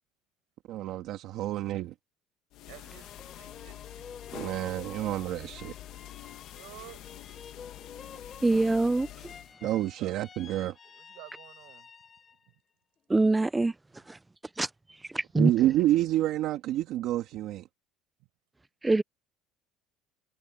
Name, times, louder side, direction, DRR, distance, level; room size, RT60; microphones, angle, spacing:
voice 1, 0.7-1.9 4.3-5.7 9.6-10.7 15.3-17.6, right 14 dB, 60° right, 1.6 m, -28 dB
sound 1, 2.5-9.5, left 14 dB, 60° left, 1.5 m, -46 dB
voice 2, 2.6-4.1 6.5-7.0 10.0-10.2 10.8-11.9 12.4-12.6 13.9-14.1 15.4-15.5 18.2-18.3, right 26 dB, 80° right, 7.6 m, -52 dB
sound 2, 2.7-12.5 13.0-13.6, left 6 dB, 25° left, 4.4 m, -50 dB
voice 3, 8.4-9.1 13.1-13.7 14.1-14.2 14.6-14.7 15.1-15.5 18.8-19.0, right 2 dB, 10° right, 0.4 m, -24 dB
cardioid pair, 135°, 0 cm